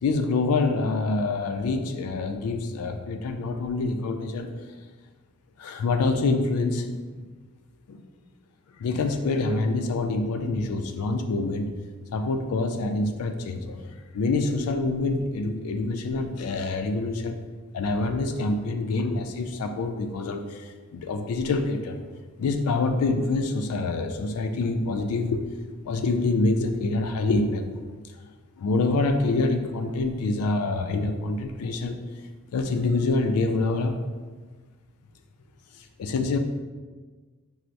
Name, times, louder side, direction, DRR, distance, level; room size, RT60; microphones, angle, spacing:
voice 1, 0.0-4.5 5.6-6.9 7.9-8.0 8.7-11.7 12.1-17.4 17.7-22.0 22.4-25.4 25.8-27.8 28.6-32.0 32.5-34.0 36.0-36.4, left 3 dB, 85° left, 7 dB, 0.3 m, -26 dB
4.4 x 2.0 x 2.6 m, 1.4 s
head